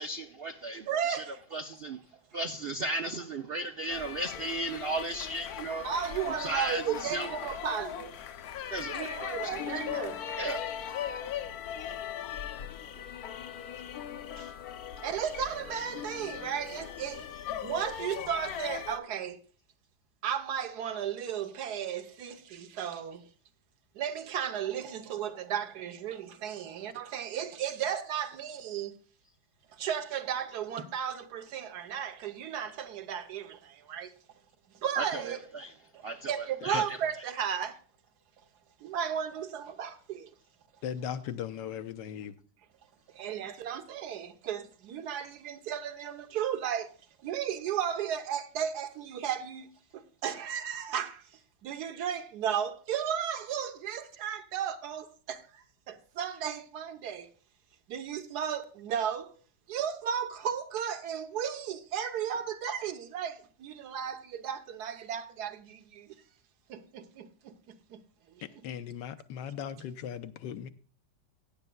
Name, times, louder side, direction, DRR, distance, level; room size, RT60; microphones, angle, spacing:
voice 1, 0.0-1.2 1.5-2.0 2.3-5.9 6.4-7.4 8.7-9.5 10.4-10.7 35.0-35.7 36.0-37.0, right 2 dB, 85° right, 0.5 m, -35 dB
voice 2, 0.9-1.4 5.8-8.1 8.9-10.2 13.0-13.1 14.4-14.5 15.0-17.3 17.6-19.4 20.2-23.3 23.9-28.9 29.7-34.1 34.8-35.4 35.9-37.8 38.8-40.3 43.1-46.9 47.2-49.7 49.9-51.3 51.6-57.3 57.9-59.3 59.7-66.1 66.7-68.0 68.3-68.4, right 8 dB, 65° right, 1.4 m, -34 dB
sound 1, 3.9-19.0, left 9 dB, 65° left, 1.1 m, -39 dB
voice 3, 40.8-42.3 68.6-70.7, left 9 dB, 80° left, 1.4 m, -38 dB
16.0 x 10.0 x 2.2 m
omnidirectional pair, 1.9 m